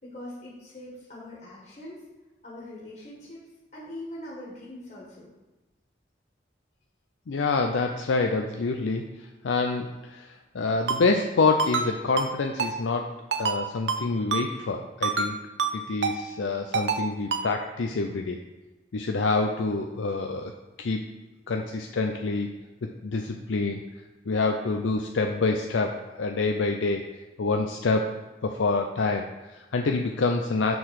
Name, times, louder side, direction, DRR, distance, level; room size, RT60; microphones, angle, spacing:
voice 1, 0.0-2.0 2.4-3.4 3.7-5.3, left 1 dB, 40° left, -6 dB, 1.7 m, -42 dB
voice 2, 7.3-13.1 13.4-15.4 15.7-18.4 18.9-20.5 20.8-21.0 21.5-22.5 23.0-23.8 24.3-27.1 27.4-30.8, left 3 dB, 90° left, 3 dB, 0.5 m, -27 dB
Ringtone, 10.9-11.0 11.6-11.9 12.2-12.3 12.6-12.7 13.3-13.6 13.9-14.0 14.3-14.4 15.0-15.3 15.6-15.7 16.0-16.2 16.7-17.0 17.3-17.4, right 5 dB, 75° right, 0.7 m, -26 dB
7.0 x 3.9 x 6.3 m, 1.1 s
head